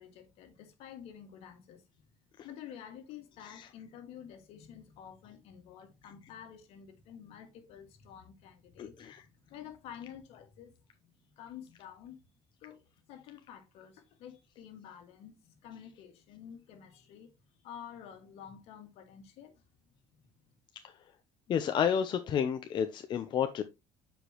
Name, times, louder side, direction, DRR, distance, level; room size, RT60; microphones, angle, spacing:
voice 1, 0.0-1.8 2.4-12.2 12.6-12.8 13.1-19.5, left 9 dB, 65° left, 2.0 m, -50 dB
voice 2, 8.8-9.2 21.5-23.6, left 8 dB, 45° left, 0.7 m, -30 dB
8.2 x 5.1 x 3.0 m
supercardioid pair, 100°, 11 cm